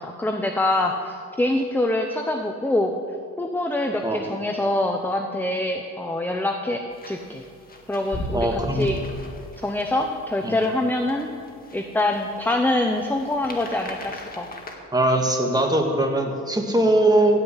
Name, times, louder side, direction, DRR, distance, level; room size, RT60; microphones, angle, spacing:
voice 1, 0.0-2.9 3.4-7.4 7.9-9.0 9.6-11.3 11.7-14.5, left 1 dB, 5° left, 5 dB, 0.7 m, -25 dB
sound 1, 6.9-14.7, left 1 dB, 30° left, 1.8 m, -39 dB
voice 2, 8.3-8.9 10.4-10.6 14.9-17.4, right 1 dB, 15° right, 3 dB, 1.8 m, -21 dB
15.5 x 5.4 x 8.1 m, 2.3 s
cardioid pair, 90°, 30 cm